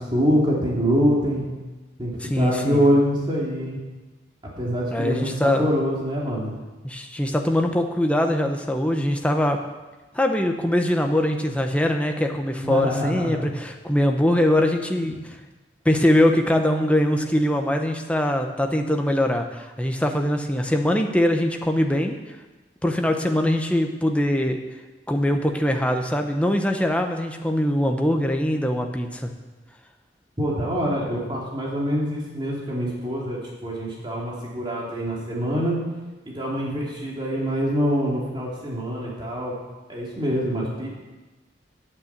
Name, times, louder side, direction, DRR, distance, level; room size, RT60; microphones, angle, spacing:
voice 1, 0.0-1.5 2.0-3.8 4.6-6.5 12.6-13.4 15.0-15.1 30.4-35.8 36.3-39.5 39.9-40.9, equal, 25° right, -4 dB, 2.8 m, -25 dB
voice 2, 2.2-2.8 4.9-5.7 6.8-9.6 10.1-15.4 15.8-22.2 22.8-24.6 25.1-29.3, left 1 dB, 5° left, 4 dB, 0.9 m, -22 dB
9.5 x 8.8 x 8.1 m, 1.2 s
head